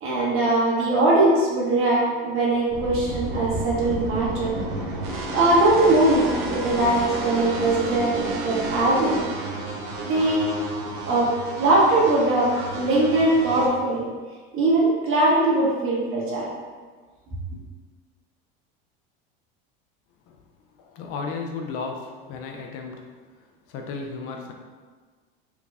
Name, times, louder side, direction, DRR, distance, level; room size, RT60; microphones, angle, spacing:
voice 1, 0.0-4.6 5.1-9.2 10.0-10.6 11.0-14.1 14.5-16.5, right 2 dB, 45° right, -5 dB, 1.4 m, -21 dB
sound 1, 2.7-13.7, right 2 dB, 85° right, 1.1 m, -31 dB
voice 2, 20.8-23.1 23.7-24.5, left 4 dB, 50° left, 2 dB, 0.6 m, -34 dB
4.8 x 2.3 x 3.3 m, 1.5 s
supercardioid pair, 110°, 29 cm